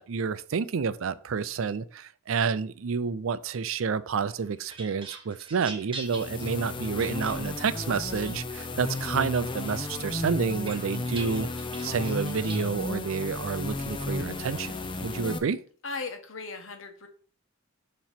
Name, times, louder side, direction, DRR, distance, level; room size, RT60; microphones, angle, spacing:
voice 1, 0.0-11.5 11.8-14.7 15.0-15.6, right 5 dB, 75° right, 15 dB, 0.4 m, -29 dB
sound 1, 4.2-7.8 8.3-9.2 9.6-12.7, right 4 dB, 25° right, 1.0 m, -44 dB
sound 2, 6.0-15.4, left 2 dB, 25° left, 0.5 m, -34 dB
voice 2, 15.8-17.1, left 4 dB, 70° left, 6 dB, 1.1 m, -37 dB
7.2 x 3.0 x 5.8 m, 0.44 s
head